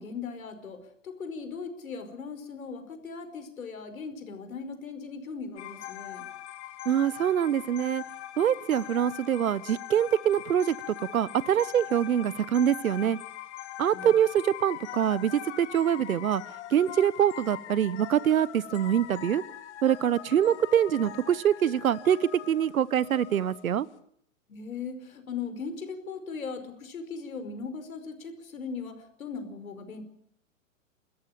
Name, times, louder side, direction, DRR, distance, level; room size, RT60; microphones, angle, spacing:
voice 1, 0.0-6.2 13.9-14.1 24.5-30.0, left 5 dB, 85° left, 9 dB, 5.0 m, -38 dB
sound 1, 5.6-23.9, left 13 dB, 55° left, 2.3 m, -42 dB
voice 2, 6.8-8.0 8.4-13.2 13.8-16.4 16.7-19.4 19.8-23.9, right 9 dB, 90° right, 20 dB, 1.1 m, -25 dB
28.0 x 14.0 x 8.9 m, 0.69 s
hypercardioid pair, 135°, 41 cm